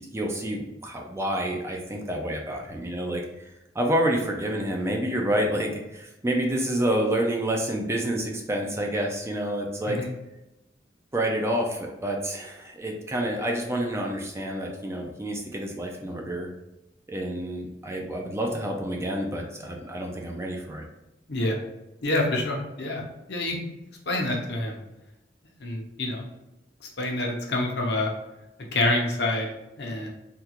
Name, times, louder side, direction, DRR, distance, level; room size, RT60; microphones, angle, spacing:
voice 1, 0.0-10.0 11.1-16.5 17.1-20.8, right 1 dB, 15° right, 1 dB, 0.4 m, -28 dB
voice 2, 22.0-23.0 23.3-23.6 24.1-24.8 25.6-26.2 26.8-28.1 28.7-29.5 29.8-30.1, left 2 dB, 65° left, 0 dB, 0.7 m, -27 dB
3.5 x 2.3 x 2.9 m, 0.94 s
head